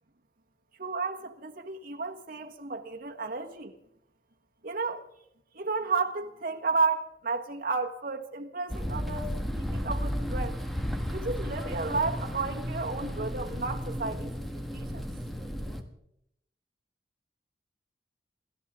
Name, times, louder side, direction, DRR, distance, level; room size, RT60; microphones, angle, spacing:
voice 1, 0.8-3.8 4.6-5.0 5.5-10.6 11.1-14.3 14.7-15.1, right 4 dB, 55° right, 1.5 m, -32 dB
sound 1, 8.7-15.8, equal, ahead, 1.5 m, -33 dB
28.0 x 13.5 x 3.7 m
head